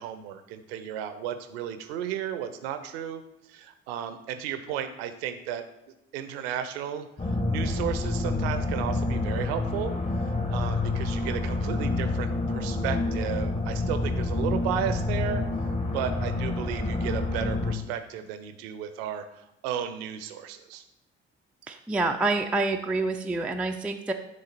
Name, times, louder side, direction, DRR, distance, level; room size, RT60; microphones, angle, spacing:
voice 1, 0.0-3.2 3.5-5.6 6.1-15.4 15.9-20.8, right 9 dB, 65° right, 10 dB, 0.7 m, -34 dB
sound 1, 7.2-17.7, left 2 dB, 20° left, 0.9 m, -28 dB
voice 2, 21.7-24.1, right 3 dB, 5° right, 3 dB, 0.3 m, -27 dB
9.9 x 3.8 x 4.0 m, 0.87 s
figure-of-eight pair, 45°, 33 cm